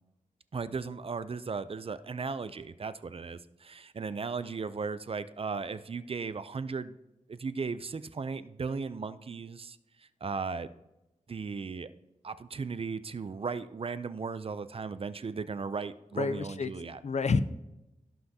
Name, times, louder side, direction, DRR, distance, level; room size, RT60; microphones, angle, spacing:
voice 1, 0.5-7.0 7.3-10.7 11.3-11.9 12.2-17.0, right 5 dB, 45° right, 14 dB, 0.4 m, -36 dB
voice 2, 16.2-17.4, left 4 dB, 55° left, 13 dB, 0.5 m, -29 dB
16.5 x 5.8 x 2.8 m, 0.93 s
wide cardioid pair, 115°, 14 cm